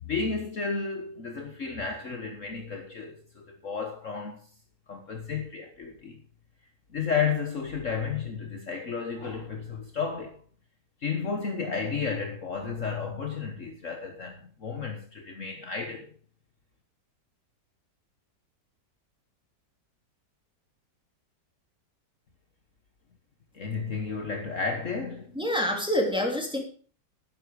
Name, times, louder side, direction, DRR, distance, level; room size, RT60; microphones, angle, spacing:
voice 1, 0.0-4.5 4.9-6.2 6.9-10.4 11.0-16.1 23.5-25.3, left 5 dB, 50° left, 1.6 m, -32 dB
voice 2, 25.3-26.6, left 1 dB, 5° right, 3.0 m, -26 dB
12.0 x 10.0 x 5.0 m
omnidirectional pair, 1.9 m